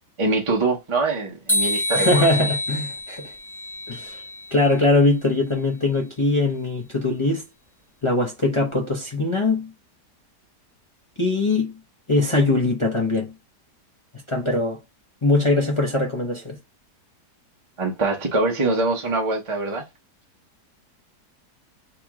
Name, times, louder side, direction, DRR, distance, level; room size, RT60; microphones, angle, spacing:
voice 1, 0.2-2.3 17.8-19.8, right 3 dB, 30° right, 0.6 m, -23 dB
sound 1, 1.5-4.6, left 1 dB, ahead, 0.8 m, -26 dB
voice 2, 1.9-3.3 3.9-4.2 4.5-7.4 8.0-9.7 11.2-11.7 12.1-13.3 14.3-14.8 15.2-16.6, left 2 dB, 35° left, 0.4 m, -21 dB
3.0 x 2.9 x 3.6 m
omnidirectional pair, 1.8 m